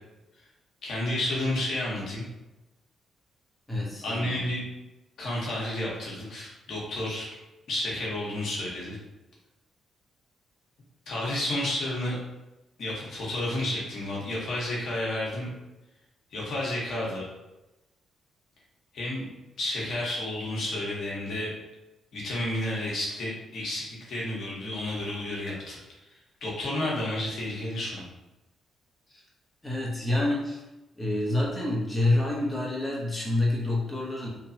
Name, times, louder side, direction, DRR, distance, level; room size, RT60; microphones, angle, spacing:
voice 1, 0.8-2.2 4.0-4.6 5.2-7.3 7.7-9.0 11.1-12.1 12.8-15.5 16.3-17.2 18.9-19.3 19.6-21.5 22.1-25.8 26.4-28.0, left 1 dB, 65° left, -5 dB, 0.9 m, -31 dB
voice 2, 3.7-4.4 29.1-29.2 29.6-30.6 30.9-34.3, left 2 dB, 15° left, -4 dB, 0.8 m, -27 dB
2.9 x 2.2 x 2.7 m, 0.99 s
supercardioid pair, 65°, 0 cm